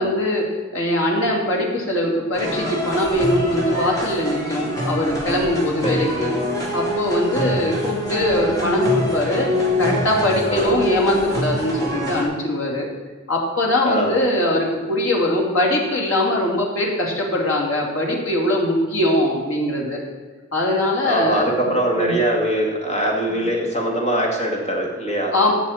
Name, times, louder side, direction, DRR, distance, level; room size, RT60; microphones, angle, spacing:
voice 1, 0.0-6.3 6.7-9.5 9.8-12.9 13.3-20.0 20.5-22.2 23.3-23.4 25.3-25.5, left 1 dB, 75° left, -1 dB, 2.8 m, -21 dB
sound 1, 2.3-12.2, left 1 dB, 15° left, 2.8 m, -25 dB
voice 2, 21.0-25.3, right 1 dB, 30° left, -1 dB, 2.2 m, -22 dB
16.5 x 6.4 x 4.3 m, 1.4 s
head